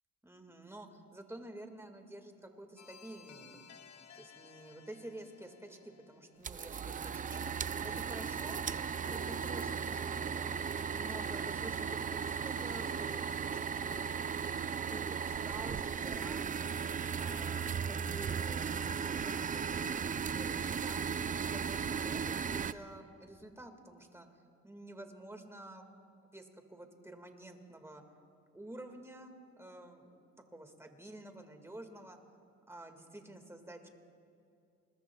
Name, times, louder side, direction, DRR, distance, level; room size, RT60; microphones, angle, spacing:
voice 1, 0.2-3.8 4.2-8.7 9.0-10.6 10.9-14.1 14.8-16.7 17.2-25.9 26.2-28.0 28.5-32.2 32.7-33.9, right 1 dB, 10° right, 5 dB, 1.8 m, -50 dB
sound 1, 2.8-7.5, left 7 dB, 65° left, 1.2 m, -58 dB
sound 2, 6.4-22.7, right 6 dB, 25° right, 0.4 m, -36 dB
28.0 x 21.5 x 2.3 m, 2.5 s
cardioid pair, 90°, 30 cm